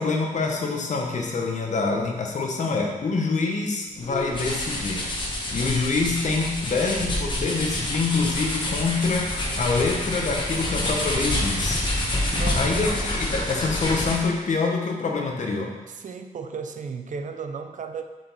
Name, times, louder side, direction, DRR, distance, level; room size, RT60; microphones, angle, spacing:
voice 1, 0.0-5.1 5.5-9.3 9.6-11.8 12.5-15.7, left 4 dB, 55° left, 1 dB, 1.1 m, -26 dB
sound 1, 4.0-14.4, left 1 dB, 35° left, 1.4 m, -27 dB
voice 2, 12.3-12.7 15.9-18.0, right 5 dB, 60° right, 7 dB, 0.6 m, -34 dB
7.6 x 5.2 x 4.2 m, 1.2 s
wide cardioid pair, 165°, 15 cm